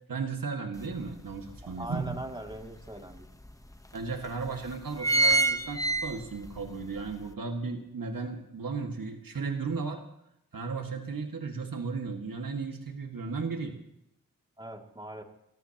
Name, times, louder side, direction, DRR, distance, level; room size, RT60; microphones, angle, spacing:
voice 1, 0.1-2.2 3.9-10.0 10.5-13.8, right 4 dB, 80° right, 3 dB, 2.0 m, -35 dB
sound 1, 0.8-0.9 1.3-2.5 3.2-3.3 3.5-3.6 4.3-4.5 4.7-6.6 7.0-7.1, right 2 dB, 10° left, 1.1 m, -26 dB
voice 2, 1.6-3.3 14.6-15.2, right 1 dB, 15° right, 2 dB, 2.7 m, -41 dB
30.0 x 14.0 x 3.0 m, 0.79 s
cardioid pair, 55°, 34 cm